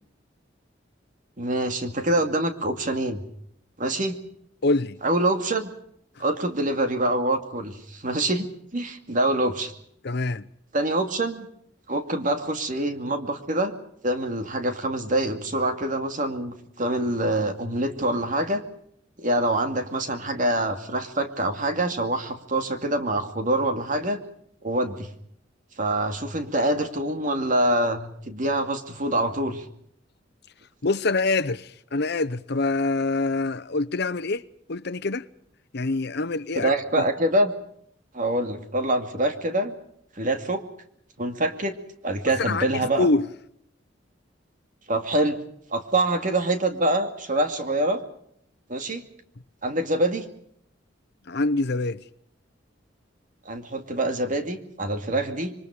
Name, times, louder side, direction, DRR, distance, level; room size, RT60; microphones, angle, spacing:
voice 1, 1.4-3.2 3.8-4.2 5.0-5.7 6.2-8.5 8.7-9.7 10.7-11.5 11.9-18.6 19.2-24.2 24.6-25.1 25.8-29.6 36.5-37.5 38.1-39.8 40.2-40.6 41.2-41.8 42.0-43.1 44.9-45.4 45.7-48.0 48.7-49.0 49.6-50.3 53.5-55.5, right 1 dB, 45° right, 2.4 m, -25 dB
voice 2, 4.6-5.0 10.0-10.5 30.8-34.4 34.7-35.3 35.7-36.7 37.0-37.1 42.4-42.7 43.0-43.2 51.3-52.0, left 3 dB, 60° left, 0.9 m, -25 dB
27.0 x 24.0 x 5.0 m
head